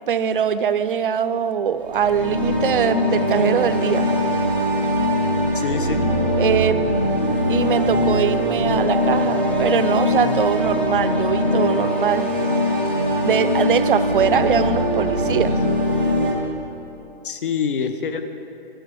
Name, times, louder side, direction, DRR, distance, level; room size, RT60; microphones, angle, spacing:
voice 1, 0.1-4.1 6.4-6.9 7.5-12.3 13.2-15.6, right 7 dB, 60° right, 12 dB, 0.6 m, -22 dB
sound 1, 1.8-16.3, left 1 dB, 10° left, 0.4 m, -21 dB
voice 2, 5.5-6.0 17.2-18.2, left 6 dB, 60° left, 9 dB, 0.8 m, -25 dB
11.5 x 6.2 x 6.9 m, 2.8 s
hypercardioid pair, 175°, 30 cm